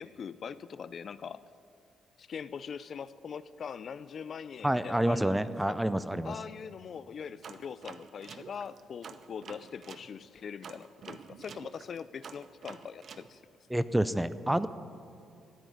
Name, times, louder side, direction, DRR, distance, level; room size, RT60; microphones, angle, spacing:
voice 1, 0.0-1.4 2.2-5.8 6.2-13.4, left 7 dB, 55° left, 16 dB, 0.4 m, -42 dB
voice 2, 4.6-6.3 13.7-14.7, right 1 dB, 5° right, 14 dB, 0.5 m, -28 dB
sound 1, 7.4-10.1 10.6-13.3, right 6 dB, 55° right, 0.8 m, -48 dB
14.0 x 9.1 x 9.7 m, 2.4 s
cardioid pair, 90°, 0 cm